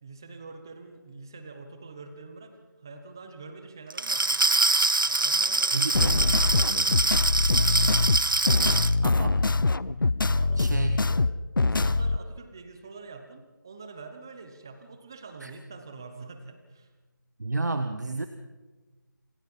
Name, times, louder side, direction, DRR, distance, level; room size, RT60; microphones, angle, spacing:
voice 1, 0.0-4.5 5.0-8.4 10.1-11.3 11.6-16.9, right 4 dB, 10° right, 8 dB, 0.9 m, -45 dB
Glass, 3.9-8.9, right 3 dB, 85° right, 1.0 m, -24 dB
voice 2, 5.7-6.2 9.0-9.4 10.6-11.1 15.4-15.5 17.4-18.3, right 2 dB, 60° right, 8 dB, 1.4 m, -30 dB
sound 1, 5.9-12.2, left 3 dB, 85° left, 0.7 m, -24 dB
27.5 x 17.5 x 5.5 m, 1.2 s
figure-of-eight pair, 175°, 11 cm